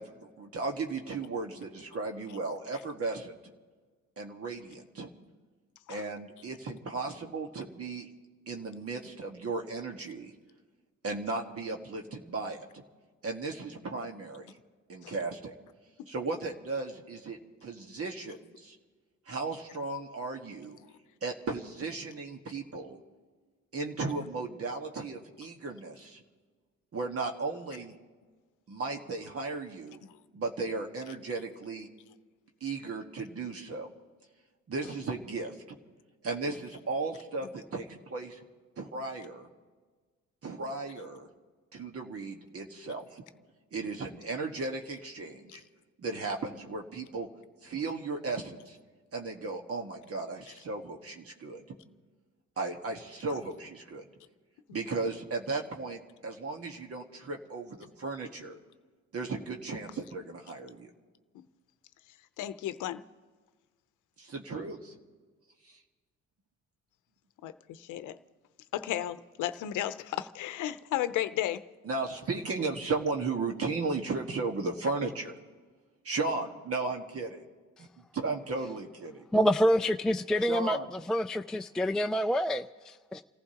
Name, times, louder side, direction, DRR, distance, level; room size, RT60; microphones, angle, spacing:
voice 1, 0.0-3.4 4.2-5.1 5.9-8.1 8.5-10.3 11.0-12.8 13.2-14.5 14.9-15.5 16.1-18.8 19.3-20.8 21.2-23.0 23.7-26.2 26.9-27.9 28.7-30.0 30.3-31.9 32.6-33.9 34.7-35.5 36.2-38.4 38.8-39.5 40.4-41.3 41.7-43.2 43.7-45.6 46.0-47.3 47.6-48.8 49.1-51.6 52.6-54.0 54.7-58.6 59.1-60.9 64.2-65.0 65.6-65.8 71.8-75.3 76.0-77.4 78.1-79.2 80.5-80.9, right 3 dB, 50° right, 2 dB, 1.7 m, -35 dB
voice 2, 62.4-63.0 67.4-68.2 68.7-71.6, left 12 dB, 80° left, 12 dB, 0.8 m, -34 dB
voice 3, 79.3-83.2, equal, ahead, 6 dB, 0.3 m, -27 dB
29.5 x 15.0 x 2.9 m, 1.4 s
cardioid pair, 90°, 30 cm